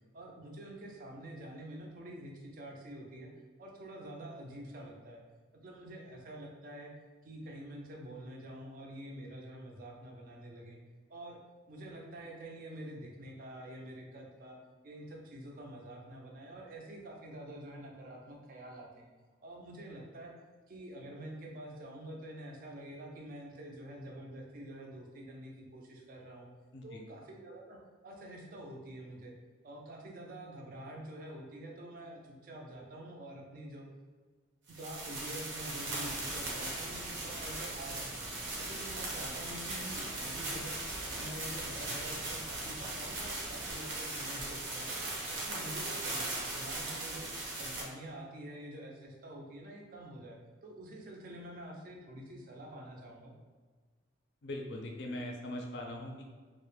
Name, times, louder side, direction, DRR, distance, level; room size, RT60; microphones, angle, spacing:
voice 1, 0.1-3.3 3.6-5.2 5.6-6.9 7.2-10.8 11.1-11.4 11.7-14.6 14.8-19.1 19.4-20.3 20.7-26.5 26.8-29.3 29.6-33.9 34.8-38.3 38.6-45.0 45.3-47.3 47.6-53.3, right 1 dB, 45° right, 0 dB, 0.4 m, -47 dB
voice 2, 26.7-27.1 54.4-56.2, left 1 dB, 60° left, 1 dB, 0.4 m, -41 dB
sound 1, 34.7-47.8, right 2 dB, 80° right, 0.7 m, -39 dB
sound 2, 36.0-43.7, equal, 5° left, 0.5 m, -50 dB
2.3 x 2.0 x 3.1 m, 1.4 s
head